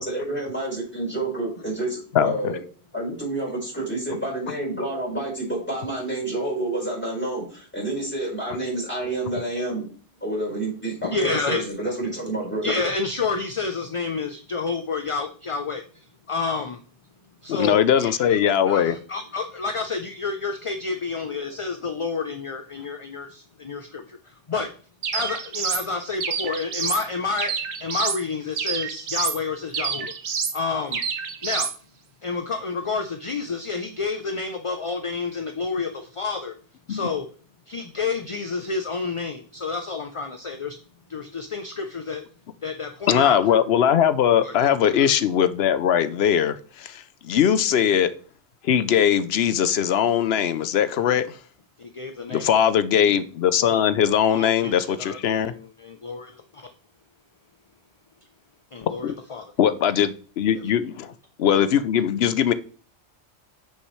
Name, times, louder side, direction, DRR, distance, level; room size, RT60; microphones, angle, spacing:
voice 1, 0.0-2.6 2.9-9.9 10.2-12.8, right 2 dB, 10° left, 4.3 m, -29 dB
voice 2, 2.1-2.5 17.5-19.0 36.9-37.0 43.1-48.1 48.6-51.4 52.3-55.5 59.0-59.1 59.6-61.1 61.4-62.5, left 9 dB, 70° left, 0.8 m, -20 dB
voice 3, 11.0-11.7 12.6-16.8 17.4-18.4 18.7-24.7 25.1-27.5 27.8-30.0 30.5-31.0 31.4-31.7 32.2-36.5 36.9-37.3 37.7-40.8 41.1-42.2 42.6-43.4 44.4-44.5 44.8-45.2 51.8-52.5 54.3-54.7 55.0-56.7 58.7-59.4 60.5-60.6, left 4 dB, 40° left, 0.5 m, -29 dB
sound 1, 25.0-25.9 26.2-27.0 27.4-28.2 28.6-29.4 29.7-30.6 30.9-31.7, right 6 dB, 80° right, 1.2 m, -28 dB
8.1 x 6.6 x 3.1 m
omnidirectional pair, 1.2 m